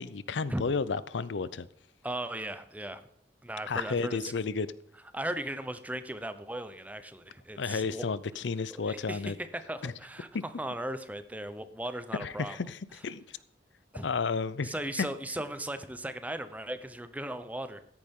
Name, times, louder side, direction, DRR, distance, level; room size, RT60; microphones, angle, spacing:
voice 1, 0.0-1.7 3.7-4.7 7.6-9.3 9.8-9.9 10.3-10.4 12.2-13.2 14.0-15.1, left 4 dB, 85° left, 17 dB, 0.6 m, -32 dB
voice 2, 2.0-3.0 3.4-4.3 5.1-8.1 8.7-12.6 13.9-14.1 14.6-17.8, right 1 dB, 10° right, 11 dB, 0.8 m, -37 dB
13.5 x 10.5 x 3.7 m, 0.73 s
head